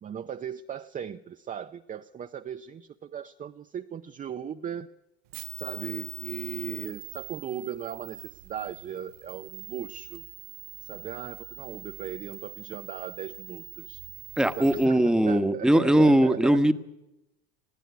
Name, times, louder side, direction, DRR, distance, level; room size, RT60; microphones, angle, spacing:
voice 1, 0.0-4.9 5.6-10.2 10.8-14.0 14.6-16.6, right 8 dB, 25° right, 8 dB, 0.6 m, -38 dB
sound 1, 5.3-14.9, right 17 dB, 65° right, 1.1 m, -43 dB
voice 2, 14.4-16.7, right 1 dB, ahead, 11 dB, 1.2 m, -20 dB
20.0 x 15.5 x 9.5 m, 0.94 s
hypercardioid pair, 85°, 33 cm